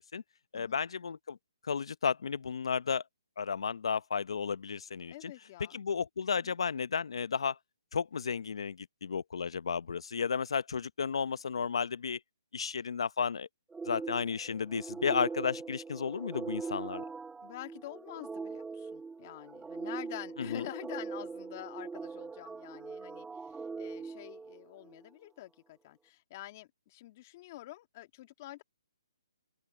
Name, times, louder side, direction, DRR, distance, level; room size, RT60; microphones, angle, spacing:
voice 1, 0.5-1.4 1.6-3.0 3.4-5.1 5.7-7.6 7.9-12.2 12.5-13.5 13.8-17.0 20.4-20.7, left 6 dB, 70° left, 0.8 m, -33 dB
voice 2, 5.1-5.8 6.3-6.5 17.4-28.6, left 16 dB, 30° left, 2.1 m, -47 dB
sound 1, 13.7-25.0, right 4 dB, 5° right, 0.3 m, -41 dB
open air
hypercardioid pair, 165°, 3 cm